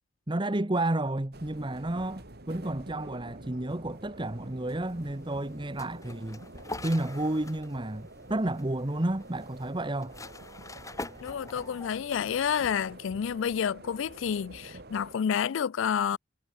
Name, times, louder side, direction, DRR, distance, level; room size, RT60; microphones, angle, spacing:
voice 1, 0.3-6.4 6.8-10.2, right 1 dB, 25° right, 1.0 m, -31 dB
sound 1, 1.3-15.2, right 1 dB, 50° right, 2.9 m, -48 dB
sound 2, 4.3-12.5, left 2 dB, 15° left, 3.3 m, -46 dB
voice 2, 11.2-16.2, left 7 dB, 65° left, 0.4 m, -29 dB
head